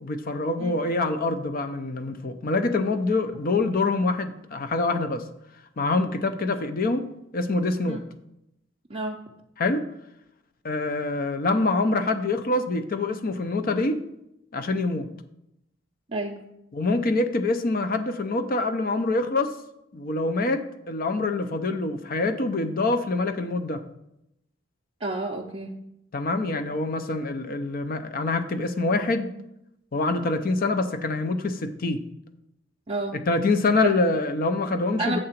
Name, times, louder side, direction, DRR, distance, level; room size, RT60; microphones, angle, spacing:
voice 1, 0.0-5.2 5.8-7.1 7.3-8.0 9.6-9.8 10.6-14.0 14.5-15.1 16.7-19.5 19.9-23.8 26.1-29.3 29.9-32.0 33.1-35.2, left 3 dB, 45° left, 9 dB, 0.5 m, -25 dB
voice 2, 8.9-9.2 16.1-16.4 25.0-25.7 32.9-33.2 33.8-33.9 35.0-35.2, right 2 dB, 30° right, -2 dB, 0.5 m, -30 dB
7.7 x 3.8 x 5.8 m, 0.84 s
head